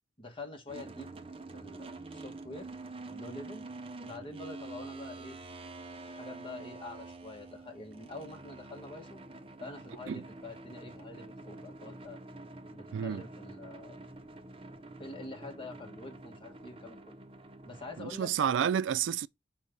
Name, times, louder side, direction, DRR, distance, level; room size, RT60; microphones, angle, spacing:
voice 1, 0.2-1.1 1.5-2.7 3.1-3.6 4.0-5.4 6.0-9.2 9.6-12.2 12.7-14.0 15.0-17.2 17.6-18.3, left 2 dB, 30° left, 1.5 m, -46 dB
sound 1, 0.7-18.6, right 2 dB, 30° right, 0.6 m, -47 dB
voice 2, 12.9-13.2 18.0-19.3, right 8 dB, 85° right, 0.3 m, -30 dB
5.4 x 3.4 x 5.2 m
head